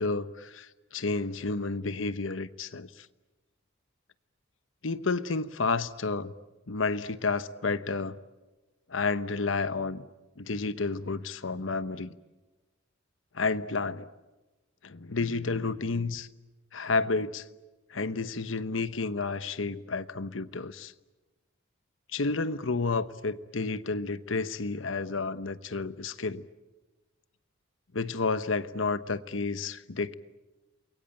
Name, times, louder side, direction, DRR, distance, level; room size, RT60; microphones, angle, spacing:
voice 1, 0.0-3.1 4.8-6.3 6.7-8.2 8.9-10.0 10.4-12.1 13.3-14.1 14.8-16.3 16.7-17.4 17.9-20.9 22.1-26.4 27.9-30.1, left 3 dB, 85° left, 1.1 m, -31 dB
28.5 x 23.0 x 9.1 m
head